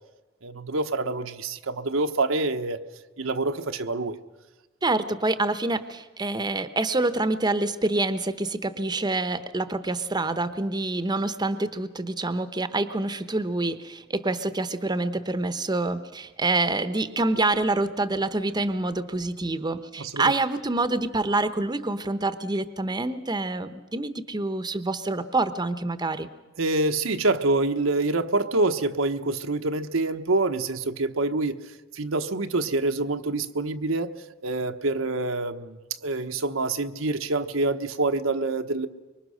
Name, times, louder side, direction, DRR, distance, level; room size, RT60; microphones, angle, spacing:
voice 1, 0.4-2.8 3.2-4.2 20.0-20.3 26.6-31.6 31.9-34.1 34.4-38.9, right 2 dB, 85° right, 7 dB, 1.2 m, -26 dB
voice 2, 4.8-26.3, right 2 dB, 20° right, 11 dB, 0.9 m, -26 dB
25.0 x 23.5 x 6.5 m, 1.2 s
head